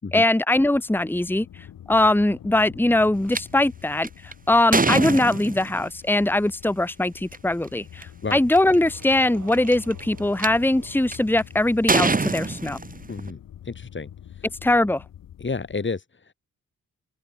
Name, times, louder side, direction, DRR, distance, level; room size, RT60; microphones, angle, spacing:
voice 1, 0.1-1.4 1.9-12.8 14.6-15.0, left 1 dB, 5° left, 1.5 m, -21 dB
sound 1, 0.7-15.8, left 10 dB, 85° left, 7.0 m, -45 dB
sound 2, 3.3-3.4 4.0-5.9 7.2-7.4 8.0-8.1 8.3-8.8 9.5-10.5 11.1-11.4 11.9-13.3, right 3 dB, 25° right, 1.9 m, -24 dB
sound 3, 8.9-12.2, right 7 dB, 65° right, 6.8 m, -50 dB
voice 2, 13.1-13.4 13.6-14.1 14.4-14.5 15.4-16.3, left 4 dB, 35° left, 3.8 m, -31 dB
open air
cardioid pair, 60°, 33 cm